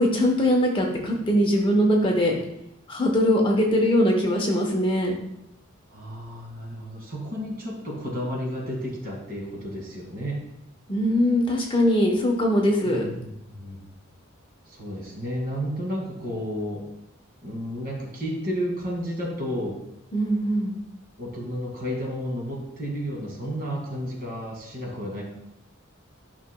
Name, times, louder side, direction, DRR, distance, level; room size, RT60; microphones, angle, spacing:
voice 1, 0.0-2.4 2.9-5.1 10.9-13.0 20.1-20.8, equal, 25° left, 0 dB, 1.0 m, -21 dB
voice 2, 5.9-10.4 12.8-13.9 14.7-16.9 17.4-19.8 21.2-25.2, equal, 45° right, -2 dB, 2.2 m, -32 dB
11.5 x 5.9 x 2.3 m, 0.79 s
head